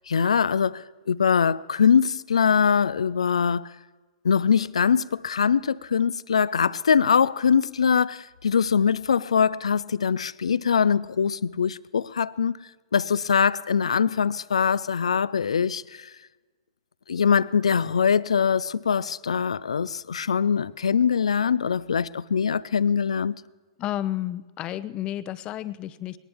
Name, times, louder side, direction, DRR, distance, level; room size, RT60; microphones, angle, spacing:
voice 1, 0.1-3.7 4.2-12.6 12.9-16.1 17.1-23.3, left 6 dB, 85° left, 0.5 m, -22 dB
voice 2, 23.8-26.2, left 13 dB, 30° left, 0.8 m, -31 dB
21.5 x 18.5 x 3.6 m
hypercardioid pair, 115°, 3 cm